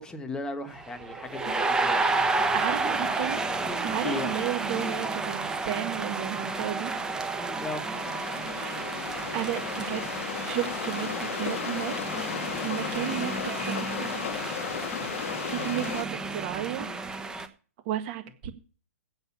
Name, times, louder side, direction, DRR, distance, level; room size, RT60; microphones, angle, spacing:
voice 1, 0.0-2.2 4.0-4.3 7.4-7.8, left 2 dB, 10° left, 1.4 m, -36 dB
sound 1, 0.8-17.5, right 3 dB, 10° right, 1.0 m, -31 dB
voice 2, 1.4-2.1 2.5-3.4 3.8-6.9 8.4-8.8 9.3-10.0 10.4-11.9 12.6-14.5 14.9-15.0 15.5-16.1 16.3-16.9 17.8-18.5, right 12 dB, 40° right, 1.8 m, -33 dB
sound 2, 7.7-16.0, left 10 dB, 55° left, 0.9 m, -35 dB
8.0 x 7.2 x 8.4 m
hypercardioid pair, 140°, 8 cm